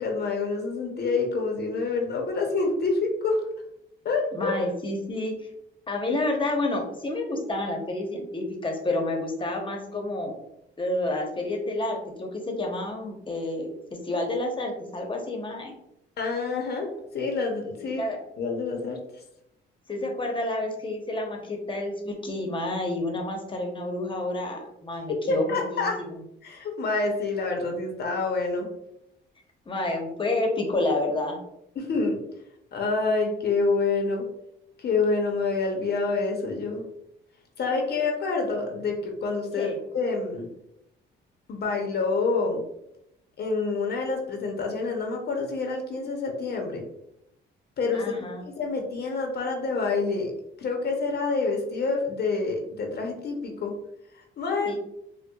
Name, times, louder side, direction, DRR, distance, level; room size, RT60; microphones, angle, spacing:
voice 1, 0.0-3.4 4.0-4.6 16.2-18.0 18.4-19.0 25.1-26.0 26.4-28.7 31.8-32.2 32.7-34.3 34.8-36.8 37.6-40.5 41.5-42.6 43.4-46.9 47.8-48.2 48.4-50.3 50.6-53.7 54.4-54.8, left 3 dB, 55° left, 2 dB, 0.7 m, -27 dB
voice 2, 4.3-5.5 5.9-10.4 10.8-13.7 14.0-15.7 17.9-18.2 19.9-25.9 29.7-31.4 39.6-39.8 47.9-48.4 54.7-54.8, left 2 dB, 25° left, 2 dB, 0.8 m, -29 dB
4.4 x 2.2 x 2.3 m, 0.81 s
cardioid pair, 90°, 20 cm